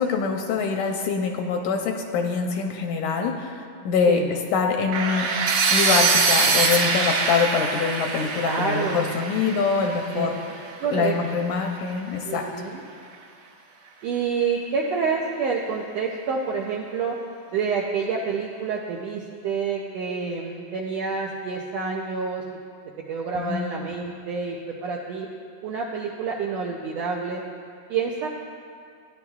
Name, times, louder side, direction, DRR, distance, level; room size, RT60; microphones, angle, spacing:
voice 1, 0.0-5.3 5.7-10.3 10.9-12.4 23.3-23.7, left 5 dB, 80° left, 3 dB, 1.9 m, -24 dB
sound 1, 4.9-10.8, right 4 dB, 60° right, 2.2 m, -23 dB
voice 2, 8.4-9.0 10.1-10.3 10.8-11.4 12.2-12.8 14.0-17.1 17.5-22.4 23.1-24.6 24.8-25.3 25.6-27.4 27.9-28.3, right 5 dB, 90° right, 0 dB, 1.4 m, -28 dB
16.0 x 10.5 x 2.3 m, 2.3 s
omnidirectional pair, 3.7 m